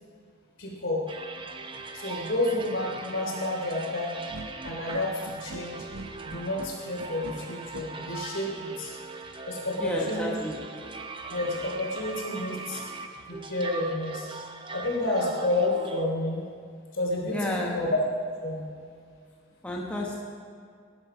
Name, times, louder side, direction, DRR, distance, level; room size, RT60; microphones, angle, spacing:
voice 1, 0.6-1.0 1.9-4.2 4.6-5.8 6.2-8.9 9.5-10.3 11.3-12.8 13.3-14.3 14.7-16.4 16.9-17.4 17.7-18.0 18.4-18.6, left 2 dB, 65° left, -2 dB, 3.4 m, -30 dB
sound 1, 1.1-16.1, right 4 dB, 25° right, 0.7 m, -41 dB
sound 2, 4.3-7.8, right 2 dB, 75° right, 0.9 m, -42 dB
voice 2, 9.8-10.6 17.3-17.8 19.6-20.2, left 1 dB, 5° left, -3 dB, 1.2 m, -31 dB
18.0 x 9.8 x 5.0 m, 2.2 s
head